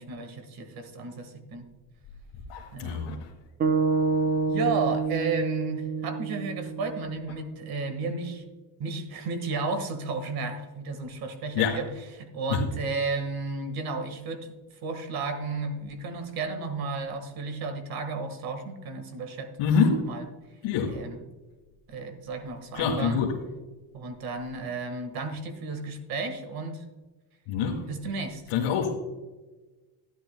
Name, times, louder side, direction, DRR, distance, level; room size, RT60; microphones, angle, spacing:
voice 1, 0.0-1.7 2.7-3.0 4.5-8.4 8.8-11.9 12.1-14.5 14.8-20.2 20.9-21.2 21.9-23.2 23.9-26.8 27.9-28.4, right 4 dB, 50° right, 8 dB, 1.6 m, -33 dB
voice 2, 2.5-3.3 11.6-11.8 12.5-12.6 19.6-20.1 20.6-21.0 22.7-23.3 27.5-27.8 28.5-29.0, left 6 dB, 85° left, -3 dB, 1.6 m, -25 dB
sound 1, 3.6-7.9, right 4 dB, 20° right, 0.4 m, -28 dB
13.0 x 10.5 x 2.2 m, 1.2 s
cardioid pair, 160°, 46 cm